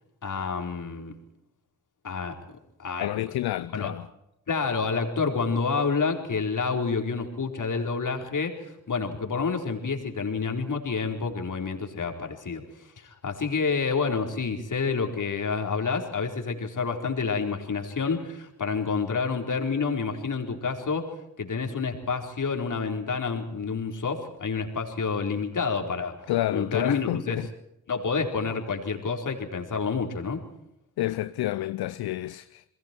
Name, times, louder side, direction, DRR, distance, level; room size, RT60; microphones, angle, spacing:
voice 1, 0.2-1.1 2.0-2.4 2.8-3.3 3.6-3.9 4.5-21.1 21.4-26.2 26.5-27.4 27.9-30.4, left 5 dB, 50° left, 4.3 m, -29 dB
voice 2, 3.0-4.1 26.3-27.5 31.0-32.6, left 15 dB, 65° left, 0.7 m, -29 dB
29.0 x 22.0 x 4.6 m
hypercardioid pair, 40°, 40 cm